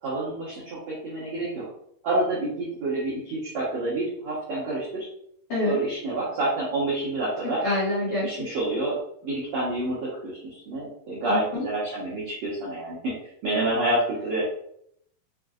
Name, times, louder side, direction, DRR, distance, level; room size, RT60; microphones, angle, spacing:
voice 1, 0.0-1.7 2.0-5.1 5.6-7.6 8.2-9.0 9.2-13.1 13.4-14.4, right 2 dB, 70° right, -8 dB, 1.6 m, -28 dB
voice 2, 7.6-8.5 11.3-11.6, left 2 dB, 50° left, -10 dB, 1.9 m, -26 dB
6.1 x 2.6 x 2.4 m, 0.70 s
omnidirectional pair, 4.7 m